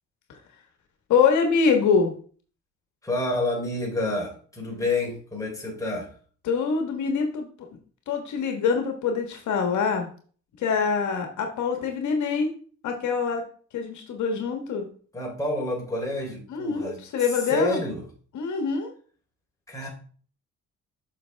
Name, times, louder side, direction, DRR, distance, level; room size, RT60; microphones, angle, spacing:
voice 1, 1.1-2.1 6.4-7.5 8.1-10.1 10.6-12.5 12.8-13.4 13.7-14.9 16.5-17.8 18.3-18.9, left 5 dB, 75° left, 4 dB, 1.3 m, -24 dB
voice 2, 3.0-6.1 15.1-18.0 19.7-19.9, left 2 dB, 10° left, -2 dB, 3.3 m, -29 dB
7.8 x 6.2 x 3.4 m, 0.44 s
cardioid pair, 90°, 30 cm